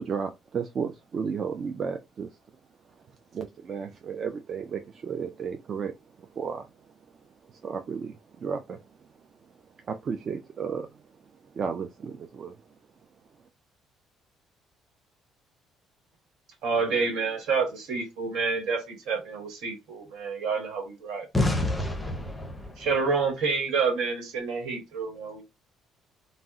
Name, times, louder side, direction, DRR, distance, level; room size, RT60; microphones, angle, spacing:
voice 1, 0.0-2.4 3.0-3.1 3.3-6.9 7.4-9.1 9.5-12.8, right 6 dB, 40° right, 0.3 m, -34 dB
voice 2, 16.6-21.3 22.8-25.5, right 4 dB, 80° right, 1.2 m, -28 dB
voice 3, 21.3-22.8, left 2 dB, 10° left, 0.6 m, -27 dB
2.6 x 2.0 x 3.5 m
cardioid pair, 140°, 0 cm